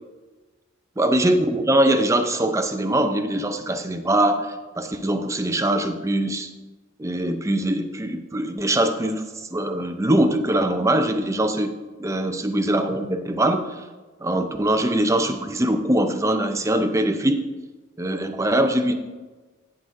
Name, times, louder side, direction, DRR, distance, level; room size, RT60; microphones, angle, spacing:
voice 1, 1.0-6.5 7.0-13.8 14.2-17.4 18.0-18.9, right 1 dB, 15° right, 7 dB, 0.6 m, -22 dB
11.0 x 9.9 x 2.6 m, 1.2 s
head